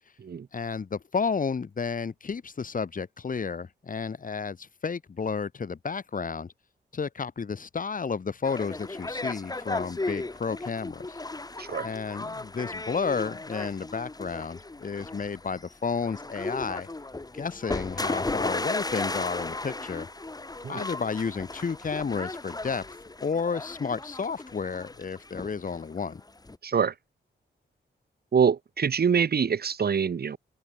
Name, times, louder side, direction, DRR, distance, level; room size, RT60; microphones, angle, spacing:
voice 1, 0.5-6.5 6.9-11.2 11.8-16.9 17.3-20.1 20.7-22.8 23.2-26.2, left 5 dB, 50° left, 7.9 m, -32 dB
sound 1, 8.4-26.6, left 2 dB, 20° left, 6.2 m, -35 dB
voice 2, 26.6-26.9 28.3-30.4, right 6 dB, 60° right, 3.6 m, -25 dB
open air
wide cardioid pair, 110°, 18 cm